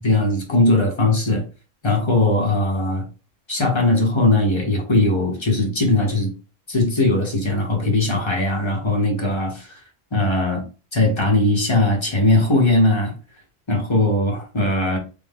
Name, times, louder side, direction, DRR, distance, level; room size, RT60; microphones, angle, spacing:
voice 1, 0.0-1.4 1.8-3.0 3.5-6.3 6.7-9.7 10.1-10.6 10.9-13.1 13.7-15.0, left 2 dB, 30° left, 1.0 m, -19 dB
3.4 x 2.1 x 3.5 m
omnidirectional pair, 1.0 m